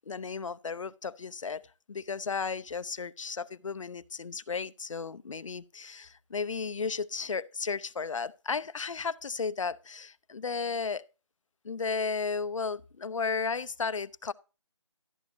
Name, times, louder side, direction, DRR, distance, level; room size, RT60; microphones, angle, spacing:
voice 1, 0.1-1.6 1.9-11.0 11.6-14.3, left 5 dB, 85° left, 0.6 m, -34 dB
12.0 x 8.8 x 2.6 m
hypercardioid pair, 180°, 16 cm